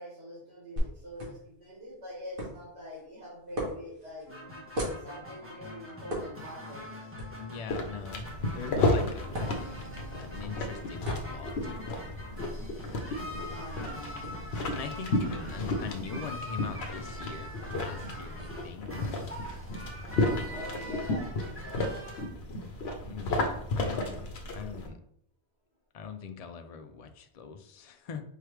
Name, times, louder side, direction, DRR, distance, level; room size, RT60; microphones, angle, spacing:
voice 1, 0.0-4.3 5.0-6.9 13.3-14.2 14.6-15.2 20.4-21.9, equal, 80° right, -5 dB, 1.8 m, -45 dB
sound 1, 0.8-18.5, equal, 60° right, 1.5 m, -42 dB
sound 2, 4.3-22.3, left 1 dB, 15° right, 1.0 m, -44 dB
voice 2, 7.4-9.8 10.2-11.5 14.7-19.0 23.1-24.2 24.5-25.0 25.9-28.2, left 6 dB, 55° left, 8 dB, 0.4 m, -42 dB
sound 3, 7.7-24.9, left 2 dB, 80° left, 1.0 m, -33 dB
4.5 x 3.3 x 3.1 m, 0.68 s
omnidirectional pair, 1.1 m